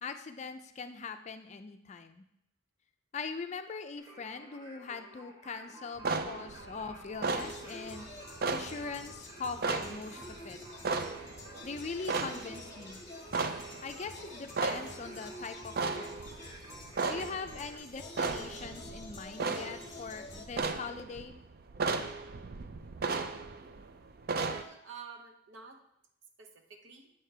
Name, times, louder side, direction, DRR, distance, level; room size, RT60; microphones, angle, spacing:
voice 1, 0.0-2.2 3.1-8.1 8.5-10.6 11.6-13.0 13.8-16.1 17.1-21.4, left 4 dB, 35° left, 8 dB, 0.4 m, -41 dB
Singing, 4.0-17.8, right 1 dB, 25° right, 1.1 m, -53 dB
sound 1, 6.0-24.6, right 4 dB, 50° right, 0.4 m, -36 dB
sound 2, 7.2-20.5, left 1 dB, 15° left, 1.0 m, -49 dB
voice 2, 24.3-25.8 26.4-27.1, right 5 dB, 65° right, 4 dB, 0.8 m, -48 dB
8.4 x 3.4 x 6.5 m, 0.77 s
head